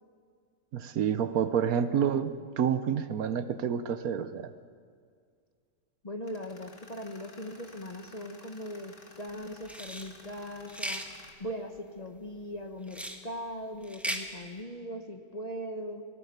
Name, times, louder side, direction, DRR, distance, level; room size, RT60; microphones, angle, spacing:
voice 1, 0.7-4.5, right 8 dB, 70° right, 12 dB, 1.2 m, -28 dB
voice 2, 6.0-11.0 11.4-16.1, equal, 30° left, 5 dB, 1.0 m, -40 dB
Tools, 6.2-11.3, left 3 dB, 45° left, 2.2 m, -54 dB
sound 1, 9.7-10.1 10.7-11.1 12.9-13.2 13.8-14.2, equal, ahead, 1.3 m, -36 dB
18.5 x 16.5 x 9.3 m, 2.1 s
omnidirectional pair, 1.7 m